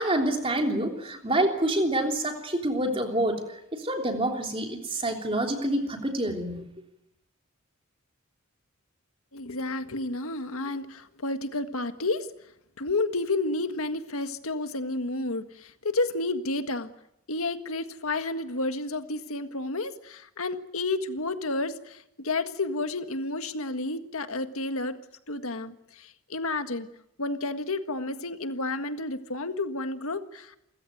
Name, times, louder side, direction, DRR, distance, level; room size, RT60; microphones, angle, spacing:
voice 1, 0.0-6.6, right 1 dB, 25° right, 3 dB, 3.3 m, -27 dB
voice 2, 9.3-12.3 12.8-16.9 17.3-25.0 25.3-26.9 27.2-30.6, left 2 dB, 75° left, 9 dB, 1.7 m, -31 dB
28.5 x 16.0 x 9.3 m, 0.84 s
head